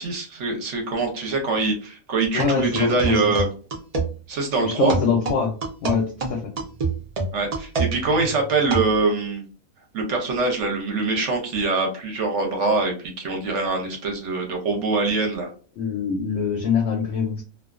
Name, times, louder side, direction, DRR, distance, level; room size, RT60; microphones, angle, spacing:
voice 1, 0.0-3.5 4.3-4.9 7.3-9.4 9.9-15.5, right 3 dB, 65° right, 2 dB, 0.8 m, -24 dB
voice 2, 2.3-3.4 4.6-5.5 5.8-6.5 15.8-17.4, left 5 dB, 65° left, 2 dB, 0.7 m, -24 dB
sound 1, 2.4-4.1 4.9-9.0, right 3 dB, 85° right, 0.3 m, -26 dB
2.3 x 2.3 x 2.3 m, 0.37 s
omnidirectional pair, 1.6 m